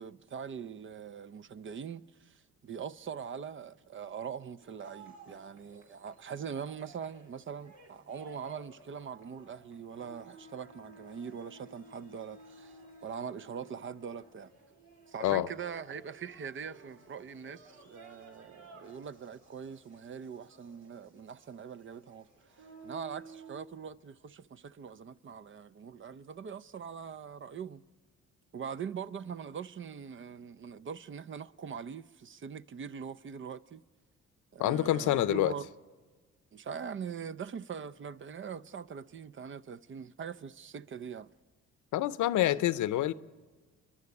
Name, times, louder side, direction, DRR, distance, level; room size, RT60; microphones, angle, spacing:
voice 1, 0.0-14.5 15.1-22.3 22.6-27.8 28.5-33.8 34.5-35.7 36.5-41.3, right 7 dB, 40° right, 0.6 m, -42 dB
sound 1, 4.6-23.6, right 2 dB, 75° right, 4.5 m, -55 dB
voice 2, 34.6-35.5 41.9-43.1, left 13 dB, 80° left, 0.7 m, -27 dB
29.0 x 11.0 x 9.6 m
cardioid pair, 90°, 30 cm